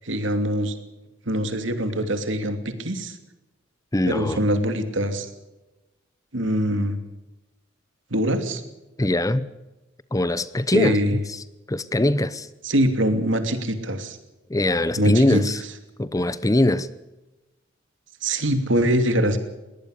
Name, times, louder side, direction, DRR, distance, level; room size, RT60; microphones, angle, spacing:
voice 1, 0.0-0.7 1.3-3.2 4.0-5.3 6.3-7.0 8.1-8.6 10.7-11.2 12.6-14.2 15.0-15.4 18.2-19.4, equal, 70° right, 2.8 m, -23 dB
voice 2, 3.9-4.4 9.0-9.5 10.1-11.0 11.7-12.5 14.5-15.6 16.0-16.9, left 1 dB, 20° left, 0.8 m, -21 dB
21.5 x 18.5 x 6.7 m
head